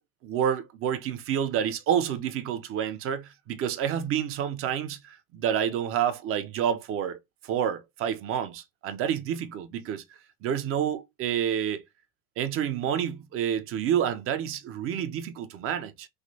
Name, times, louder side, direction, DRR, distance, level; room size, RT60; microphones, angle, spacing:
voice 1, 0.2-7.2 7.4-10.0 10.4-11.8 12.4-16.1, right 9 dB, 30° right, 0.5 m, -29 dB
3.2 x 2.9 x 2.6 m
hypercardioid pair, 105°, 44 cm